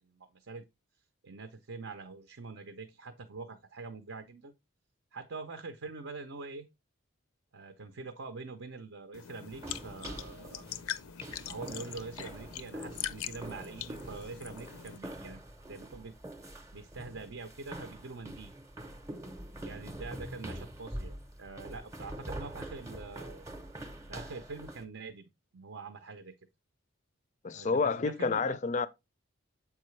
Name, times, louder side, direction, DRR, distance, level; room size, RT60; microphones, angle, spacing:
voice 1, 0.1-0.6 1.2-4.5 5.1-6.7 7.5-10.6 11.5-16.1 16.7-18.5 19.6-23.5 24.1-26.3 27.5-28.6, right 4 dB, 65° right, 0.6 m, -44 dB
sound 1, 9.1-15.0, left 10 dB, 90° left, 0.5 m, -42 dB
sound 2, 9.5-24.8, right 1 dB, 15° right, 0.7 m, -45 dB
voice 2, 27.4-28.9, left 4 dB, 35° left, 0.4 m, -29 dB
7.6 x 4.7 x 3.2 m
head